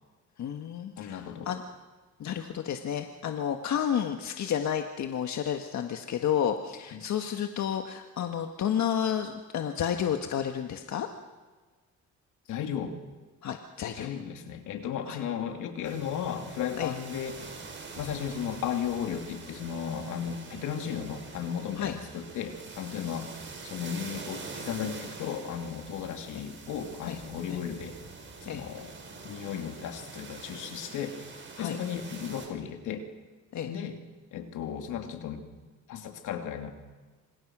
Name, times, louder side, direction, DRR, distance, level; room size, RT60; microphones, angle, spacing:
voice 1, 0.4-1.6 2.2-11.1 13.4-14.1 15.1-15.2 16.8-16.9 21.8-22.0 26.3-26.4 27.0-27.2 27.5-27.6 28.4-28.6 31.6-31.8 33.5-33.7, left 9 dB, 65° left, 5 dB, 1.6 m, -31 dB
voice 2, 1.0-1.5 6.9-7.0 12.5-13.0 13.9-17.5 18.0-28.0 28.4-28.9 29.2-31.2 31.6-33.1 33.6-34.0 34.3-35.4 35.9-36.7, left 8 dB, 85° left, 5 dB, 2.9 m, -35 dB
sound 1, 15.8-32.5, right 4 dB, 40° right, 6.8 m, -45 dB
27.5 x 26.5 x 6.2 m, 1.4 s
cardioid pair, 90°, 30 cm